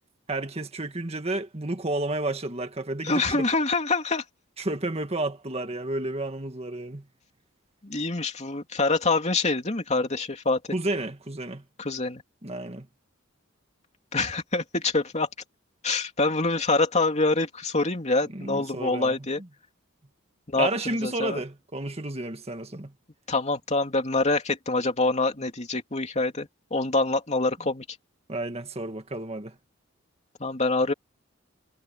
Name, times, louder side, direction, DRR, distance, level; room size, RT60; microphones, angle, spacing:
voice 1, 0.3-3.5 4.6-7.1 10.7-11.6 12.4-12.9 18.3-19.2 20.6-22.9 28.3-29.6, right 2 dB, 30° right, 1.8 m, -31 dB
voice 2, 3.0-4.2 7.8-10.6 11.8-12.2 14.1-15.3 15.8-19.4 20.5-21.4 23.3-27.8 30.4-30.9, left 3 dB, 35° left, 2.9 m, -25 dB
head